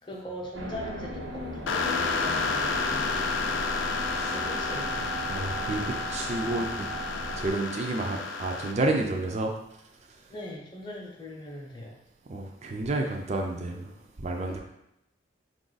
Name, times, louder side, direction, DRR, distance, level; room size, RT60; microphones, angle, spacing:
voice 1, 0.0-3.1 4.3-5.1 10.3-11.9 14.5-14.6, left 1 dB, 25° left, -2 dB, 0.7 m, -40 dB
sound 1, 0.5-7.5, right 1 dB, 80° right, 1.0 m, -37 dB
sound 2, 1.7-8.7, left 4 dB, 90° left, 0.5 m, -30 dB
voice 2, 5.3-6.9 7.4-9.5 12.3-14.6, right 2 dB, 35° right, 2 dB, 0.4 m, -30 dB
5.3 x 2.4 x 3.9 m, 0.84 s
head